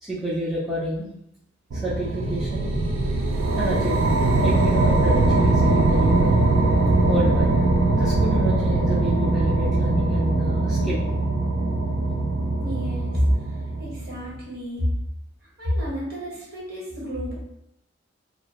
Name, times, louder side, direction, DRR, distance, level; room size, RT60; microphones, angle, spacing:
voice 1, 0.0-1.1 1.7-3.1 3.6-6.4 7.1-7.5 7.9-11.0, equal, ahead, -9 dB, 0.4 m, -29 dB
sound 1, 1.7-14.2, right 2 dB, 85° right, 0.4 m, -21 dB
voice 2, 12.6-13.2 13.8-14.9 15.4-17.3, equal, 55° right, -5 dB, 1.0 m, -29 dB
2.3 x 2.0 x 2.8 m, 0.77 s
head